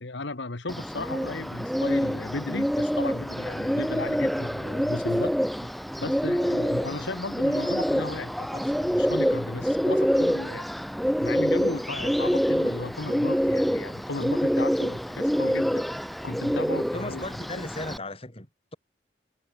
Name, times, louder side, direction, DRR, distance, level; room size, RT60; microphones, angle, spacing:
voice 1, 0.0-5.3 6.0-10.6 11.2-15.8 16.2-17.2, left 2 dB, 75° left, 1.4 m, -35 dB
Bird, 0.7-18.0, equal, ahead, 0.5 m, -26 dB
voice 2, 16.9-18.8, left 2 dB, 30° left, 3.6 m, -36 dB
head